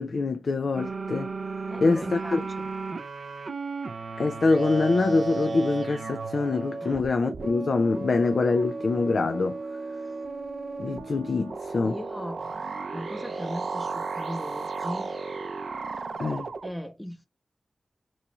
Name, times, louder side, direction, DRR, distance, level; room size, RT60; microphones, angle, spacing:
voice 1, 0.0-1.3 1.8-2.4 4.2-9.6 10.8-12.0 16.2-16.5, left 3 dB, 75° left, 0.3 m, -25 dB
sound 1, 0.7-16.7, right 4 dB, 75° right, 0.4 m, -34 dB
voice 2, 1.7-2.7 6.8-7.0 11.8-12.4 12.9-15.1 16.6-17.3, equal, 10° left, 0.6 m, -38 dB
3.0 x 2.3 x 3.9 m
wide cardioid pair, 70°, 0 cm